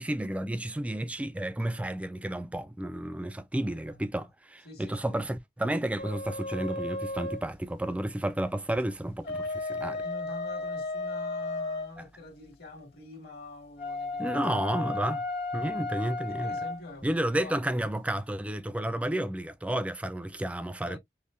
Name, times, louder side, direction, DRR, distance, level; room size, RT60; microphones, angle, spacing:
voice 1, 0.0-10.0 12.0-12.1 14.2-15.3 15.5-16.6 17.0-21.0, right 1 dB, 10° right, 0.3 m, -31 dB
voice 2, 4.6-5.2 10.0-14.2 16.3-17.6 20.8-21.0, left 2 dB, 60° left, 1.6 m, -45 dB
sound 1, 6.0-7.5 9.1-11.9 13.8-16.8, left 3 dB, 80° left, 1.7 m, -34 dB
5.4 x 2.1 x 2.4 m
head